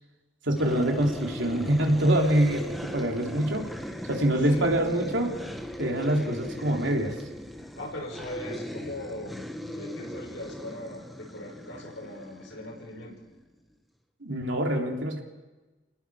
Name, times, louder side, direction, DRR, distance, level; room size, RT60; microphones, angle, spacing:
voice 1, 0.4-3.7 4.1-5.3 5.8-7.2 14.2-15.2, right 1 dB, 80° right, 1 dB, 3.2 m, -25 dB
sound 1, 0.6-13.5, equal, ahead, 1.0 m, -39 dB
voice 2, 7.7-13.2, left 1 dB, 80° left, 0 dB, 5.8 m, -40 dB
29.5 x 19.5 x 4.9 m, 1.2 s
head